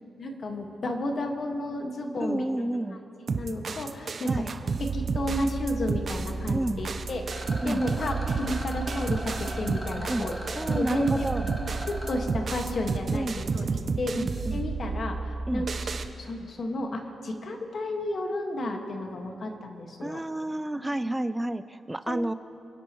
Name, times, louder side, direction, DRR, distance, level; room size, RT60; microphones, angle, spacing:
voice 1, 0.2-2.4 3.3-4.3 4.8-10.3 10.7-11.3 11.9-13.7 14.0-14.3 14.5-15.9 16.2-20.2 20.7-21.1 22.1-22.2, left 1 dB, 55° left, 3 dB, 1.8 m, -32 dB
voice 2, 2.2-3.0 4.3-4.5 6.5-6.8 7.6-7.8 10.1-10.3 10.5-11.5 13.1-13.5 14.2-14.6 15.5-15.7 20.0-22.3, right 1 dB, 10° right, 12 dB, 0.4 m, -30 dB
sound 1, 3.3-16.1, right 4 dB, 50° right, 0.9 m, -31 dB
Rattle, 7.2-12.2, equal, 15° left, 2.7 m, -40 dB
29.0 x 10.5 x 3.1 m, 2.8 s
cardioid pair, 75°, 0 cm